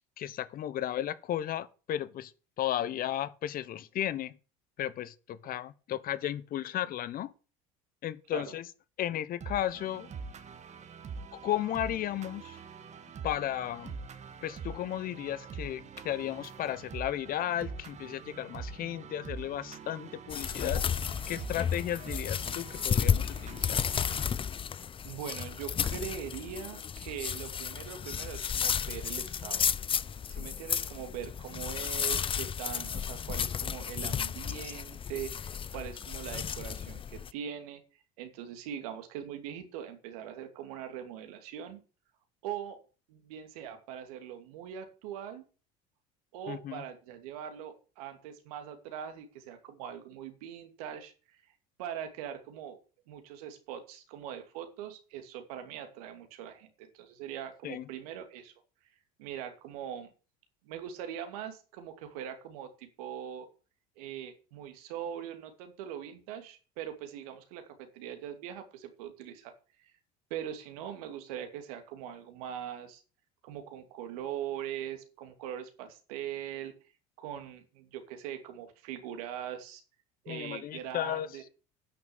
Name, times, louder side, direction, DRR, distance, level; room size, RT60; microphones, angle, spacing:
voice 1, 0.0-2.3 2.6-4.3 4.8-7.3 8.0-8.7 9.0-10.1 11.3-12.6 13.2-14.0 14.4-20.8 21.3-23.8 46.5-46.8 57.6-57.8 80.3-81.3, left 12 dB, 50° left, 1.0 m, -34 dB
sound 1, 9.4-24.3, right 5 dB, 40° right, 1.6 m, -44 dB
sound 2, 20.3-37.3, left 7 dB, 30° left, 0.6 m, -33 dB
voice 2, 25.0-29.6 30.3-37.8 38.2-41.8 42.4-42.8 43.1-45.4 46.3-51.4 51.8-52.8 53.1-58.5 59.2-60.1 60.6-63.5 64.0-69.5 70.3-73.0 73.4-76.7 77.2-79.8 80.2-81.4, right 9 dB, 80° right, 2.6 m, -41 dB
10.5 x 6.5 x 7.2 m
supercardioid pair, 85°, 19 cm